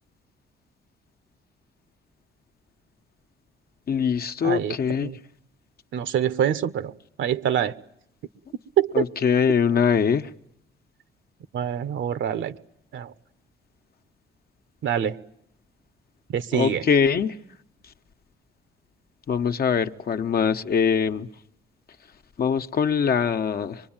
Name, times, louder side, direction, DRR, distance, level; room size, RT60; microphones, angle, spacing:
voice 1, 3.9-5.1 8.9-10.3 16.5-17.3 19.3-21.3 22.4-23.8, left 7 dB, 50° left, 1.2 m, -22 dB
voice 2, 4.4-5.2 5.9-6.9 7.2-7.7 8.8-9.0 11.5-12.5 12.9-13.1 14.8-15.2 16.3-16.8, right 9 dB, 70° right, 1.3 m, -25 dB
25.0 x 23.0 x 8.9 m
cardioid pair, 90°, 20 cm